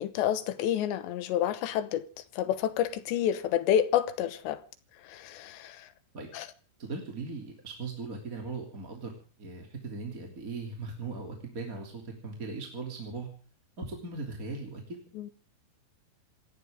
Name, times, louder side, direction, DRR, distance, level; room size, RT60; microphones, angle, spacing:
voice 1, 0.0-2.0 2.4-4.6 5.0-5.9 6.3-6.5 15.2-15.3, left 10 dB, 85° left, 3.3 m, -29 dB
voice 2, 6.8-9.1 9.4-13.3 13.8-15.0, right 3 dB, 20° right, 2.8 m, -39 dB
27.5 x 13.5 x 3.7 m
omnidirectional pair, 5.1 m